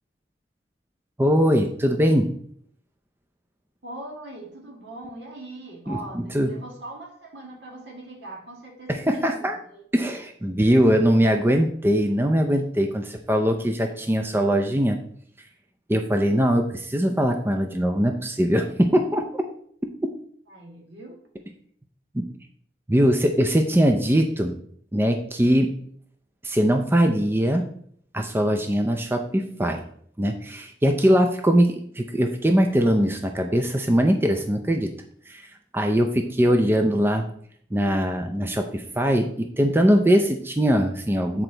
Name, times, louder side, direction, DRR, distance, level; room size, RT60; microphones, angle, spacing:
voice 1, 1.2-2.3 5.9-6.5 8.9-9.6 9.9-15.0 15.9-19.4 22.1-22.3 22.9-24.5 24.9-25.7 26.4-27.6 28.1-29.8 30.2-34.9 35.3-35.5 35.7-37.3 37.7-41.4, equal, 15° right, 4 dB, 0.4 m, -21 dB
voice 2, 3.8-9.8 20.5-21.2, right 2 dB, 70° right, 0 dB, 1.9 m, -41 dB
8.1 x 4.4 x 3.9 m, 0.63 s
head